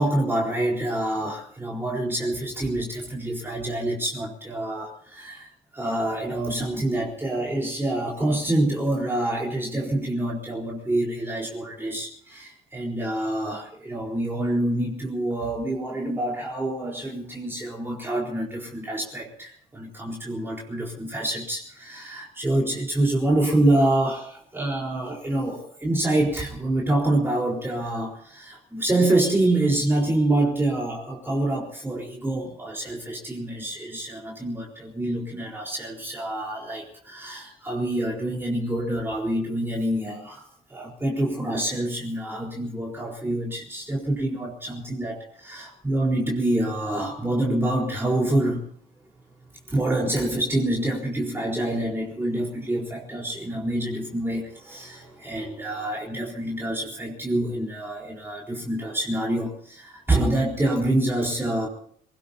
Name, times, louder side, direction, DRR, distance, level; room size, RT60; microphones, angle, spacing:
voice 1, 0.0-48.6 49.7-61.7, right 1 dB, 15° right, -2 dB, 4.2 m, -26 dB
26.0 x 19.0 x 2.8 m, 0.65 s
cardioid pair, 110°, 17 cm